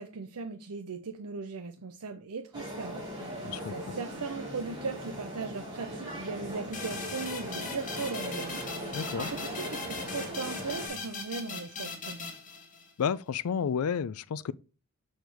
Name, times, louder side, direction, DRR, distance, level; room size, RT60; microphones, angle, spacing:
voice 1, 0.0-3.4 3.7-12.3, right 4 dB, 85° right, 0.6 m, -38 dB
sound 1, 2.5-10.9, equal, 20° right, 4.0 m, -39 dB
voice 2, 3.4-3.9 8.9-9.3 13.0-14.5, left 7 dB, 75° left, 0.4 m, -31 dB
sound 2, 6.7-13.1, left 4 dB, 35° left, 1.7 m, -40 dB
6.4 x 6.1 x 3.4 m
head